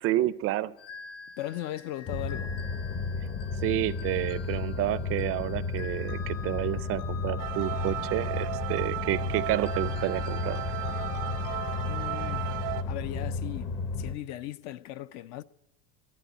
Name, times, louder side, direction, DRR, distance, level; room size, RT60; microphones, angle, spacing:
voice 1, 0.0-0.7 3.6-10.6, right 14 dB, 40° right, 0.5 m, -30 dB
sound 1, 0.8-13.1, left 6 dB, 65° left, 2.6 m, -47 dB
voice 2, 1.4-2.5 11.8-12.6 12.8-15.4, left 14 dB, 50° left, 0.5 m, -38 dB
sound 2, 2.1-14.1, left 4 dB, 30° left, 0.9 m, -33 dB
sound 3, 7.4-12.8, right 18 dB, 80° right, 0.7 m, -35 dB
12.0 x 11.0 x 10.0 m
supercardioid pair, 140°, 36 cm